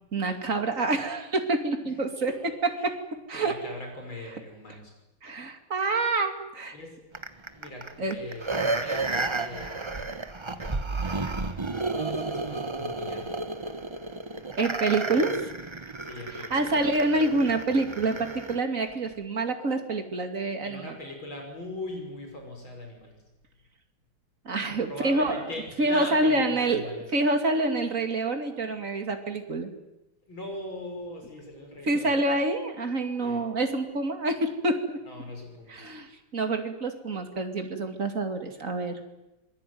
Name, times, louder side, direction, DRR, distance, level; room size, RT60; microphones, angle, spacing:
voice 1, 0.1-2.3 3.3-3.5 5.2-6.8 8.0-8.2 14.5-15.4 16.5-21.0 24.4-25.4 25.8-29.7 31.8-35.0 35.7-39.0, right 2 dB, 35° right, 6 dB, 2.9 m, -27 dB
voice 2, 2.3-2.9 3.3-4.9 6.7-7.0 7.5-10.1 11.8-13.4 16.0-16.7 20.6-23.2 24.9-27.1 30.3-32.1 33.2-33.5 35.0-35.8, left 1 dB, 65° left, 3 dB, 6.4 m, -41 dB
sound 1, 7.1-18.6 19.1-19.2, right 3 dB, 20° right, 0.8 m, -32 dB
26.0 x 21.0 x 9.4 m, 0.98 s
omnidirectional pair, 2.4 m